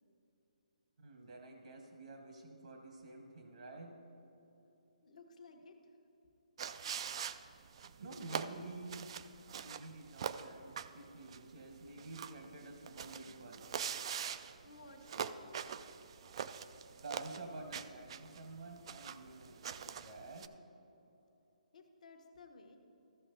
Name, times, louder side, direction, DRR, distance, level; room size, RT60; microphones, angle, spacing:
voice 1, 1.0-3.9 8.0-9.1 9.5-13.6 17.0-20.5, right 2 dB, 70° right, 3 dB, 1.3 m, -50 dB
voice 2, 5.0-6.0 14.6-15.4 21.7-22.8, left 3 dB, 60° left, 4 dB, 1.1 m, -57 dB
sound 1, 6.6-20.5, right 8 dB, 45° right, 0.3 m, -44 dB
14.0 x 6.0 x 3.9 m, 2.9 s
hypercardioid pair, 155°, 4 cm